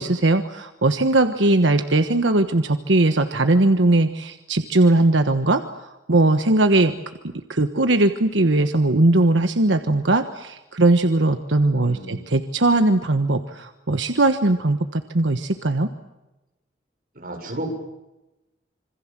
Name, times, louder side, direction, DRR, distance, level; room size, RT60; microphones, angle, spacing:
voice 1, 0.0-5.6 6.1-6.9 7.5-15.9, right 2 dB, 90° right, 8 dB, 1.3 m, -19 dB
voice 2, 11.8-12.3 17.1-17.7, right 1 dB, 50° right, 2 dB, 7.2 m, -32 dB
27.0 x 25.0 x 7.6 m, 0.99 s
head